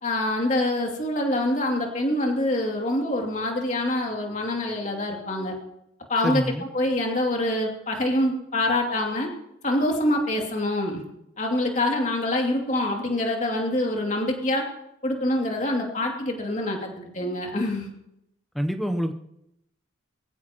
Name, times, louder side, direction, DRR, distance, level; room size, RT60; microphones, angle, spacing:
voice 1, 0.0-5.6 6.1-9.3 9.6-11.0 11.4-14.6 15.0-17.9, left 1 dB, 35° left, 0 dB, 2.7 m, -25 dB
voice 2, 6.2-6.6 18.5-19.1, equal, ahead, 6 dB, 0.8 m, -26 dB
23.0 x 15.0 x 3.0 m, 0.82 s
head